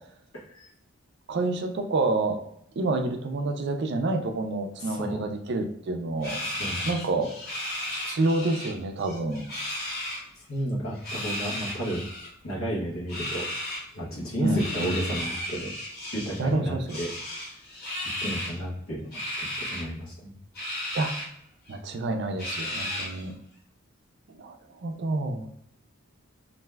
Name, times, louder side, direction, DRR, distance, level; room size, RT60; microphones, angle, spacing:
voice 1, 0.3-0.7 4.8-5.2 6.4-7.2 10.4-12.1 12.4-13.5 13.9-15.7 16.1-17.1 18.2-19.1 19.4-20.4, right 1 dB, 85° left, -4 dB, 1.0 m, -32 dB
voice 2, 1.3-2.4 2.8-6.4 6.8-7.3 7.9-9.5 14.4-15.1 16.4-17.0 20.9-21.2 21.7-23.3 24.3-25.6, right 2 dB, 55° right, 5 dB, 0.4 m, -28 dB
sound 1, 6.2-8.7 9.0-10.2 10.9-12.3 13.1-13.8 14.6-16.4 16.9-18.6 19.1-19.8 20.5-21.3 21.7-21.8 22.4-23.3, left 1 dB, 45° left, 1.1 m, -34 dB
2.6 x 2.2 x 3.2 m, 0.72 s
head